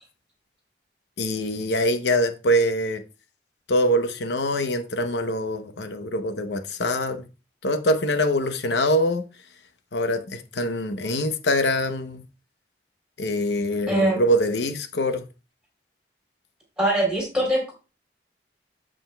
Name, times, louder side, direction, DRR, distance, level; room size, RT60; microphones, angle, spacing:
voice 1, 1.2-3.0 3.7-7.3 7.6-9.2 9.9-12.2 13.2-15.2, equal, 75° left, 0.8 m, -24 dB
voice 2, 13.9-14.2 16.8-17.7, right 1 dB, 5° right, 3.4 m, -22 dB
13.5 x 5.0 x 2.2 m
head